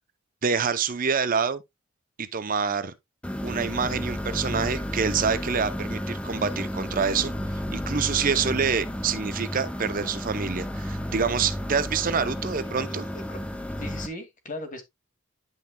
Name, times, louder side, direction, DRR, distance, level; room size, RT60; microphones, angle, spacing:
voice 1, 0.4-1.6 2.2-2.9 3.4-13.0, right 6 dB, 40° right, 0.6 m, -27 dB
sound 1, 3.2-14.1, equal, 5° left, 0.7 m, -32 dB
voice 2, 13.8-14.8, left 1 dB, 40° left, 2.1 m, -38 dB
10.5 x 5.9 x 2.2 m
head